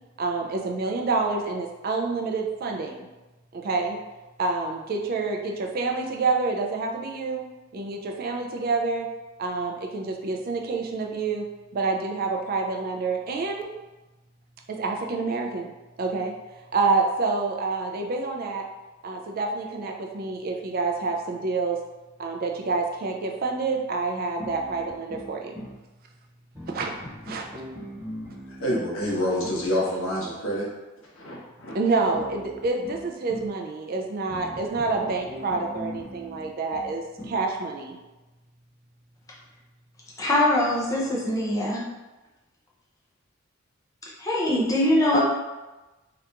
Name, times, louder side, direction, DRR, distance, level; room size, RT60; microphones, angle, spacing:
voice 1, 0.2-3.1 3.5-4.0 4.4-7.4 7.7-9.1 9.4-11.5 11.7-13.7 14.7-15.7 16.0-16.3 16.7-18.6 19.0-21.8 22.2-25.5 26.7-26.9 27.2-27.6 31.7-38.0, right 3 dB, 45° right, 2 dB, 0.3 m, -27 dB
sound 1, 24.4-25.8 26.5-29.7 32.1-33.6 34.3-37.5, equal, 10° right, 1.1 m, -40 dB
voice 2, 28.6-30.6 31.1-31.8, equal, 75° left, -5 dB, 1.0 m, -27 dB
voice 3, 40.2-41.8 44.2-45.2, left 1 dB, 15° left, -5 dB, 0.6 m, -22 dB
2.8 x 2.5 x 3.3 m, 1.1 s
head